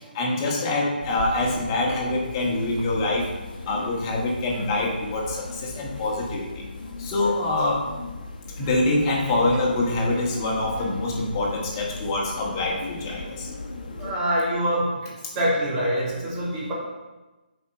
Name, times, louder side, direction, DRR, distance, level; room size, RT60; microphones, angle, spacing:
voice 1, 0.1-3.2 3.7-5.4 5.6-6.5 7.0-7.8 8.6-13.5, left 2 dB, 25° left, -2 dB, 1.7 m, -25 dB
sound 1, 1.0-14.1, left 3 dB, 55° left, 1.4 m, -37 dB
voice 2, 14.0-15.0 15.3-16.7, equal, 20° right, -6 dB, 2.3 m, -25 dB
7.0 x 5.1 x 5.6 m, 1.1 s
figure-of-eight pair, 145°, 5 cm